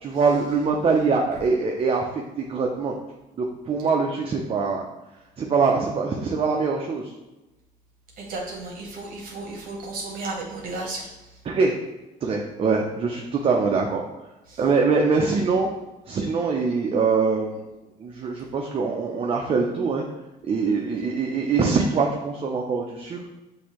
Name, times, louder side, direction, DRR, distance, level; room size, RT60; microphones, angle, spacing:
voice 1, 0.0-2.0 2.4-2.9 3.4-4.9 5.4-7.1 11.5-11.8 12.2-14.0 14.6-15.7 16.1-17.6 18.0-20.0 20.5-23.3, right 4 dB, 35° right, 1 dB, 0.5 m, -23 dB
voice 2, 8.2-11.1 14.5-14.6, right 2 dB, 55° right, -2 dB, 1.0 m, -33 dB
6.4 x 2.7 x 2.9 m, 1.0 s
cardioid pair, 110°, 17 cm